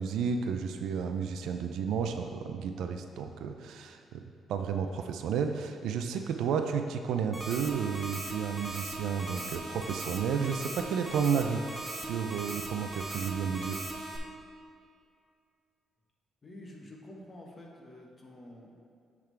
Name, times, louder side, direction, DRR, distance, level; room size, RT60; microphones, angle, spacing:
voice 1, 0.0-4.2 4.5-11.6 11.9-13.8, right 6 dB, 80° right, 6 dB, 0.4 m, -32 dB
sound 1, 7.3-14.2, right 2 dB, 20° right, 0.9 m, -39 dB
voice 2, 16.4-18.8, left 1 dB, 30° left, -1 dB, 1.2 m, -49 dB
10.5 x 3.7 x 3.3 m, 2.4 s
cardioid pair, 90°, 0 cm